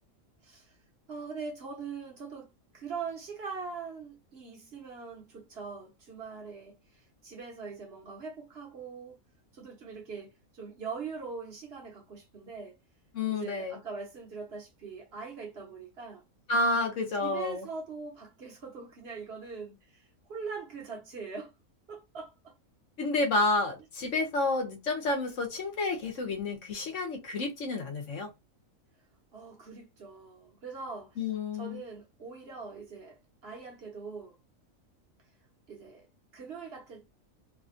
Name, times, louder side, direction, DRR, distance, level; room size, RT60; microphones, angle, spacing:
voice 1, 0.4-0.7 1.1-2.5 2.7-9.2 9.5-12.8 13.3-16.2 17.2-21.5 21.9-22.5 29.3-31.2 31.5-34.4 35.7-36.1 36.3-37.0, right 5 dB, 50° right, 1.2 m, -42 dB
voice 2, 13.1-13.8 16.5-17.6 23.0-28.3 31.2-31.8, left 2 dB, 65° left, 1.4 m, -30 dB
3.3 x 2.3 x 2.6 m
omnidirectional pair, 1.4 m